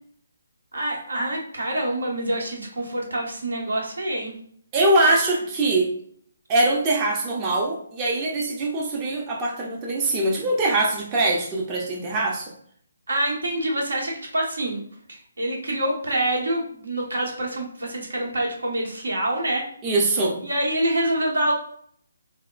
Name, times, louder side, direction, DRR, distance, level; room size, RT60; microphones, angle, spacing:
voice 1, 0.7-4.3 13.1-14.8 15.1-19.7 20.4-21.5, right 1 dB, 85° right, -1 dB, 1.2 m, -26 dB
voice 2, 4.7-5.9 6.5-12.5 19.8-20.4, right 2 dB, 20° right, -1 dB, 0.5 m, -22 dB
4.1 x 2.1 x 2.4 m, 0.62 s
hypercardioid pair, 165°, 0 cm